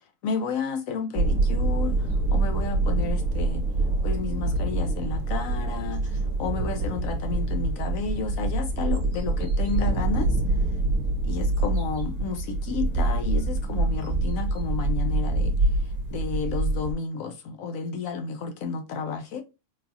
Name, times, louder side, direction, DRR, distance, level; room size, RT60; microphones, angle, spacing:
voice 1, 0.2-3.7 4.0-10.6 11.2-19.4, left 5 dB, 70° left, 0.9 m, -32 dB
sound 1, 1.2-16.9, right 2 dB, 35° right, 0.7 m, -25 dB
3.9 x 2.4 x 2.6 m
omnidirectional pair, 1.6 m